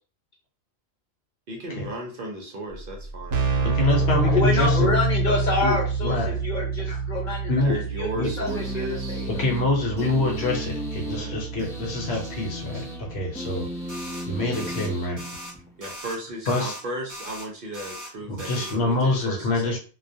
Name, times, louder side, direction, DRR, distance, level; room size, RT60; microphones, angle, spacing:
voice 1, 1.5-4.4 6.6-6.8 7.6-9.3 11.0-11.3 12.1-12.3 12.7-12.8 15.8-19.8, right 2 dB, 60° right, 1 dB, 0.7 m, -36 dB
Keyboard (musical), 2.7-2.8 3.0-13.6, right 3 dB, 80° right, 0.9 m, -27 dB
voice 2, 3.4-4.9 5.6-5.8 6.0-6.4 6.9-7.0 7.5-7.8 8.2-8.3 9.4-13.7 14.3-15.2 16.5-16.8 18.3-19.8, left 2 dB, 70° left, 0 dB, 1.0 m, -26 dB
voice 3, 4.2-7.5 8.0-9.4, left 2 dB, 55° left, -2 dB, 0.6 m, -27 dB
sound 1, 8.5-15.9, left 1 dB, 5° left, 0.5 m, -36 dB
sound 2, 13.9-14.3 14.5-14.9 15.2-15.5 15.8-16.2 16.5-16.8 17.1-17.5 17.7-18.1 18.4-18.8, equal, 20° right, 0.9 m, -39 dB
2.2 x 2.2 x 2.6 m, 0.38 s
omnidirectional pair, 1.2 m